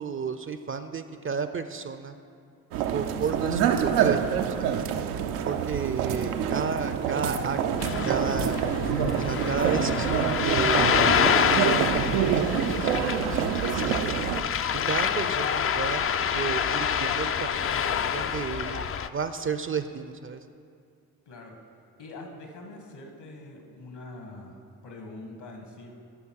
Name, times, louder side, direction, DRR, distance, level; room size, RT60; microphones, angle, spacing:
voice 1, 0.0-2.2 2.8-4.9 5.5-8.5 9.2-13.1 13.3-14.2 14.9-16.1 16.3-17.9 18.1-20.4, right 6 dB, 30° right, 10 dB, 0.5 m, -33 dB
sound 1, 2.7-14.4, right 8 dB, 85° right, 0.5 m, -26 dB
Ocean, 7.8-19.1, left 8 dB, 35° left, 0.4 m, -27 dB
voice 2, 21.2-21.6 22.0-25.9, left 2 dB, 65° left, 2 dB, 1.7 m, -44 dB
12.0 x 5.5 x 4.6 m, 2.3 s
hypercardioid pair, 40°, 43 cm